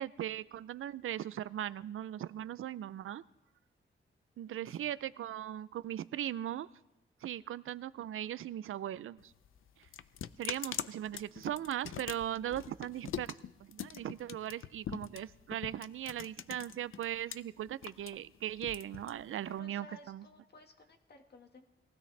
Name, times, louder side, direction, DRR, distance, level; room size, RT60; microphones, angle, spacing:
voice 1, 0.0-3.2 4.4-6.7 7.2-9.3 10.4-13.3 13.6-20.2, right 11 dB, 90° right, 17 dB, 0.4 m, -39 dB
voice 2, 4.5-4.9 19.4-21.6, left 2 dB, 55° left, 5 dB, 1.7 m, -56 dB
sound 1, 9.2-17.4 17.7-19.6, left 10 dB, 85° left, 0.5 m, -43 dB
22.0 x 16.0 x 3.3 m, 0.94 s
wide cardioid pair, 135°, 20 cm